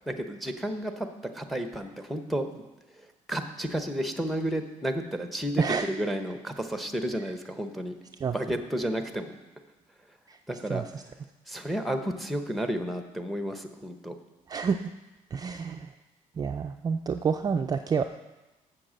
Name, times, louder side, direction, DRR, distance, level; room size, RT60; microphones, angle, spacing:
voice 1, 0.1-1.1 1.3-2.5 3.0-7.9 8.3-9.4 10.5-10.8 11.5-14.1, equal, ahead, 7 dB, 0.8 m, -32 dB
voice 2, 10.7-11.0 14.5-14.8 15.3-15.9 16.4-18.0, right 6 dB, 30° right, 5 dB, 0.3 m, -28 dB
7.7 x 6.5 x 7.4 m, 1.1 s
cardioid pair, 130°, 14 cm